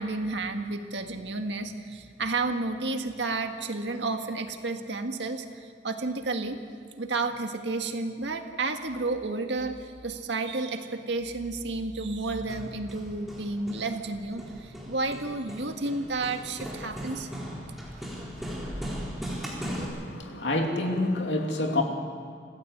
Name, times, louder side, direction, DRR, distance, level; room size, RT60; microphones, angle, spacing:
voice 1, 0.0-6.6 7.0-17.3, right 3 dB, 85° right, 5 dB, 1.8 m, -31 dB
Hammer, 12.4-19.8, equal, ahead, 4.0 m, -38 dB
voice 2, 19.7-21.8, left 2 dB, 80° left, 2 dB, 2.8 m, -28 dB
26.0 x 16.5 x 8.0 m, 2.1 s
head